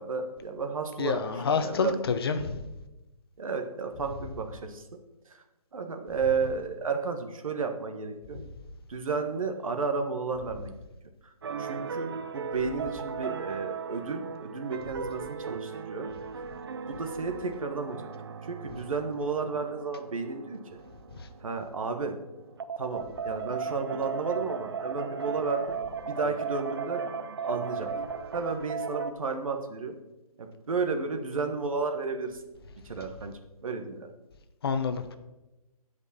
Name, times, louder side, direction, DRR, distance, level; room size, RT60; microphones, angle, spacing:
voice 1, 0.0-2.0 3.4-4.8 5.7-8.5 8.9-10.8 11.6-16.1 16.9-18.0 18.4-20.6 21.4-22.2 22.8-25.8 26.1-27.0 27.4-27.9 28.3-29.9 30.4-32.4 32.8-33.3 33.6-34.1, right 4 dB, 60° right, 5 dB, 1.4 m, -32 dB
voice 2, 1.0-2.6 34.6-35.2, left 5 dB, 40° left, 9 dB, 0.8 m, -28 dB
sound 1, 11.4-29.1, right 6 dB, 40° right, 0.4 m, -37 dB
15.5 x 5.3 x 4.2 m, 1.0 s
hypercardioid pair, 155°, 19 cm